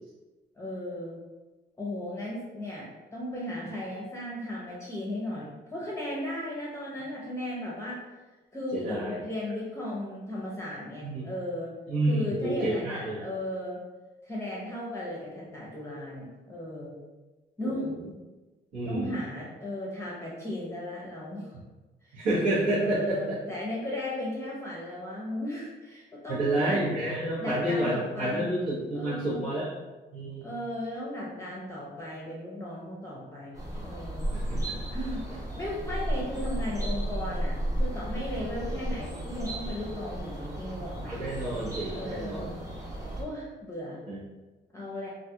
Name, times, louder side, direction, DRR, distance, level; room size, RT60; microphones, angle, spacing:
voice 1, 0.6-1.2 1.8-2.9 3.1-8.0 8.5-11.7 12.0-13.8 14.2-17.0 17.6-17.9 18.9-21.5 22.0-22.3 22.8-26.8 27.4-28.5 28.9-29.4 30.4-34.3 34.9-41.2 41.9-42.5 43.2-44.0 44.7-45.1, left 1 dB, 15° left, -5 dB, 0.6 m, -36 dB
voice 2, 8.7-9.2 11.0-11.2 11.9-13.2 17.6-17.9 18.7-19.2 22.1-23.4 26.3-29.7 30.1-30.5 34.3-34.8 41.0-42.5 44.1-44.2, right 1 dB, 80° right, -12 dB, 1.0 m, -29 dB
sound 1, 33.5-43.2, right 1 dB, 15° right, 0.9 m, -33 dB
2.5 x 2.3 x 2.7 m, 1.2 s
cardioid pair, 90°, 20 cm